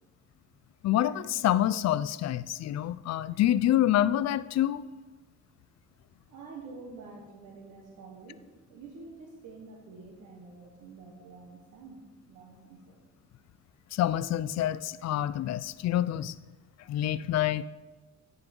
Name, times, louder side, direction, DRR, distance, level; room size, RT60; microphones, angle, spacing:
voice 1, 0.8-4.8 13.9-16.3 16.9-17.6, left 12 dB, 60° left, 17 dB, 0.4 m, -27 dB
voice 2, 6.3-8.4 8.7-12.0 12.3-13.0, right 4 dB, 85° right, 0 dB, 1.5 m, -47 dB
9.8 x 5.9 x 5.3 m, 1.2 s
cardioid pair, 90°, 30 cm